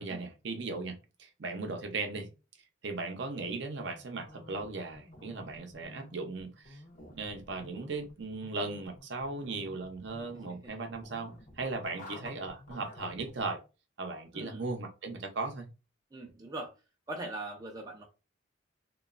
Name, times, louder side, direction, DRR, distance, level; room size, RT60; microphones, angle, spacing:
voice 1, 0.0-2.3 2.8-6.8 7.1-13.6 14.0-15.7, right 3 dB, 60° right, 0.6 m, -37 dB
sound 1, 3.9-13.5, left 1 dB, 40° left, 0.6 m, -52 dB
voice 2, 14.3-14.7 16.1-16.7 17.1-18.0, right 2 dB, 20° right, 0.4 m, -41 dB
3.0 x 2.2 x 2.4 m
head